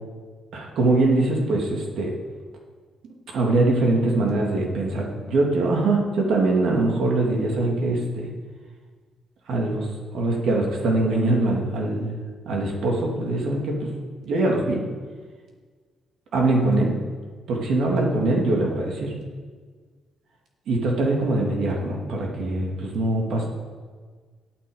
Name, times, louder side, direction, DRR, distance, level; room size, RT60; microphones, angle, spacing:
voice 1, 0.5-2.1 3.3-8.3 9.5-9.9 10.1-12.1 12.4-13.9 14.2-14.8 16.3-17.0 17.5-19.1 20.7-23.5, right 2 dB, 70° right, 0 dB, 2.8 m, -22 dB
8.9 x 8.9 x 7.3 m, 1.5 s
cardioid pair, 90°, 0 cm